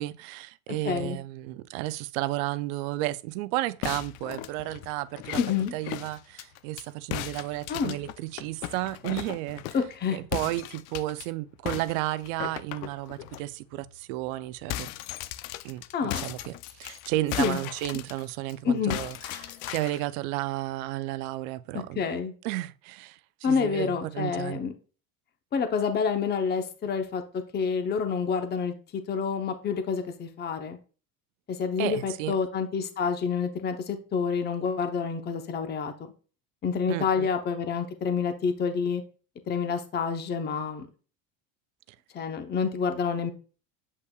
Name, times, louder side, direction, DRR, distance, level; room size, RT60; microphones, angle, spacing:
voice 1, 0.0-5.4 5.7-9.6 10.1-14.9 15.6-22.0 22.4-24.6 31.8-32.4 36.9-37.3, right 16 dB, 80° right, 0.5 m, -33 dB
voice 2, 0.8-1.2 5.4-5.7 7.7-8.0 9.7-10.2 15.9-16.2 17.4-17.6 18.6-19.0 21.7-22.3 23.4-24.7 25.5-30.8 31.5-35.9 36.6-39.0 39.5-40.9 42.1-43.3, left 6 dB, 25° left, 0.8 m, -28 dB
sound 1, 3.8-6.8 7.1-9.9 10.3-11.3 11.7-13.4 13.8-14.0 14.3-18.5 18.9-20.1, left 14 dB, 85° left, 0.6 m, -37 dB
8.1 x 5.6 x 2.3 m
cardioid pair, 135°, 40 cm